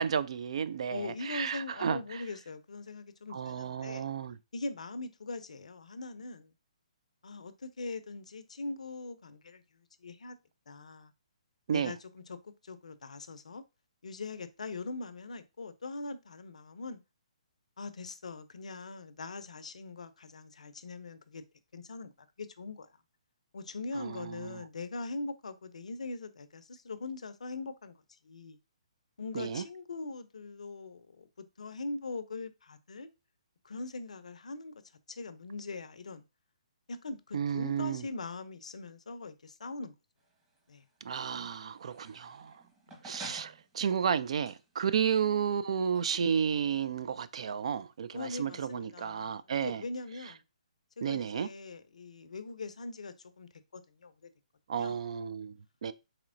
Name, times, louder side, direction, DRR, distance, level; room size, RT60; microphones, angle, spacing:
voice 1, 0.0-2.2 3.3-4.4 11.7-11.9 23.9-24.6 29.3-29.6 37.3-38.0 41.0-42.6 43.0-49.8 51.0-51.5 54.7-55.9, right 7 dB, 60° right, 0.3 m, -32 dB
voice 2, 0.9-4.1 4.5-6.5 7.2-10.4 10.7-11.1 11.7-13.6 14.0-17.0 17.8-21.4 21.7-22.1 22.4-22.9 23.5-28.6 29.2-33.1 33.6-34.7 35.1-36.2 36.9-39.9 40.7-40.8 42.9-43.0 48.1-50.4 51.0-54.3 54.8-55.0, left 3 dB, 75° left, 0.5 m, -41 dB
sound 1, 40.2-48.4, right 1 dB, 20° right, 1.3 m, -55 dB
4.2 x 3.0 x 2.5 m
figure-of-eight pair, 135°, 4 cm